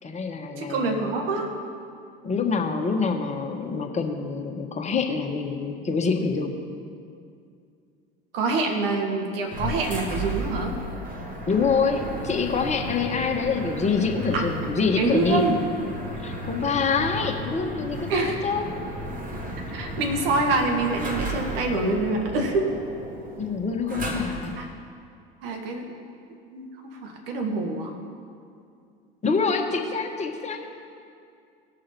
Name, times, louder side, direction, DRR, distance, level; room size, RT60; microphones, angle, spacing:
voice 1, 0.0-1.2 2.2-6.5 11.5-15.5 16.2-18.8 23.4-24.5 29.2-30.6, left 5 dB, 20° left, 3 dB, 1.3 m, -26 dB
voice 2, 0.6-1.5 8.3-10.8 14.3-14.5 15.0-15.6 18.1-18.4 19.7-22.8 24.6-24.7 25.4-25.9 26.5-27.9, right 3 dB, 70° right, 3 dB, 1.6 m, -26 dB
sound 1, 9.5-24.7, equal, 25° right, 1.7 m, -34 dB
17.0 x 6.4 x 4.4 m, 2.4 s
figure-of-eight pair, 70°, 30 cm